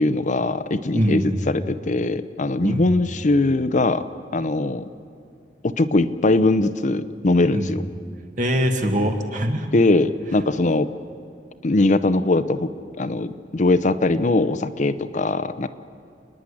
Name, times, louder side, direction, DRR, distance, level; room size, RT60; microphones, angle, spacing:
voice 1, 0.0-4.0 4.3-4.8 5.6-7.8 9.7-10.9 11.6-12.7 13.0-15.7, left 2 dB, 45° left, 11 dB, 0.7 m, -21 dB
voice 2, 0.9-1.4 2.6-2.9 7.5-7.7 8.4-9.7, equal, 45° right, 4 dB, 1.9 m, -22 dB
30.0 x 10.0 x 9.8 m, 2.4 s
head